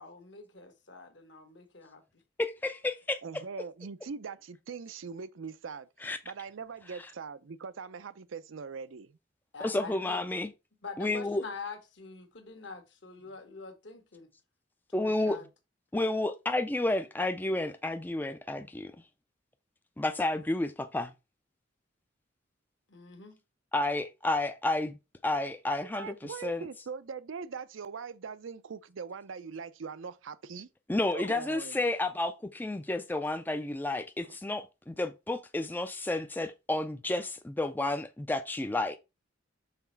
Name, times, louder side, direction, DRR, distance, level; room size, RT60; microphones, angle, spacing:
voice 1, 0.0-2.0 9.5-10.2 10.8-14.3 14.9-15.4 22.9-23.4, left 4 dB, 60° left, 1.3 m, -45 dB
voice 2, 2.4-3.2 6.0-6.2 6.9-7.1 9.6-10.5 11.0-11.4 14.9-15.4 15.9-19.0 20.0-21.1 23.7-26.6 30.9-39.0, left 2 dB, 10° left, 0.3 m, -31 dB
voice 3, 3.2-9.2 15.2-15.4 25.9-30.7 31.1-31.9 34.3-34.4, right 5 dB, 80° right, 0.5 m, -42 dB
5.7 x 4.2 x 4.5 m
head